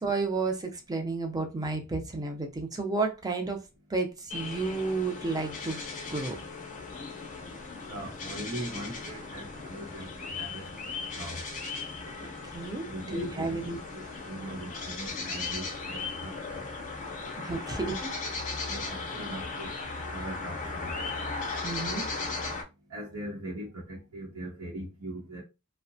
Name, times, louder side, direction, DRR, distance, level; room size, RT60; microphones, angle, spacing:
voice 1, 0.0-3.6 3.9-5.8 6.1-6.4 12.5-13.8 17.4-17.9 21.6-22.1, right 3 dB, 15° right, 0.5 m, -31 dB
sound 1, 4.3-22.6, left 3 dB, 35° left, 0.5 m, -37 dB
voice 2, 7.7-10.7 11.1-11.5 12.8-13.7 13.9-16.7 17.5-18.0 18.7-19.8 20.1-21.1 22.3-22.4 22.9-25.4, right 1 dB, 85° right, 0.8 m, -41 dB
2.8 x 2.1 x 2.6 m
head